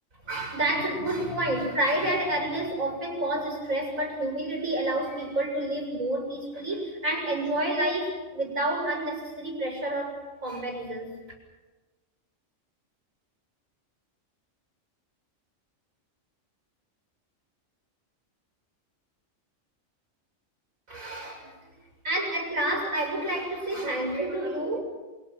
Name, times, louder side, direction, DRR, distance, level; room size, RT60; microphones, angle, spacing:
voice 1, 0.2-11.1 20.9-21.6 22.0-24.8, right 1 dB, 85° right, 2 dB, 7.4 m, -29 dB
29.5 x 26.5 x 6.1 m, 1.2 s
omnidirectional pair, 1.4 m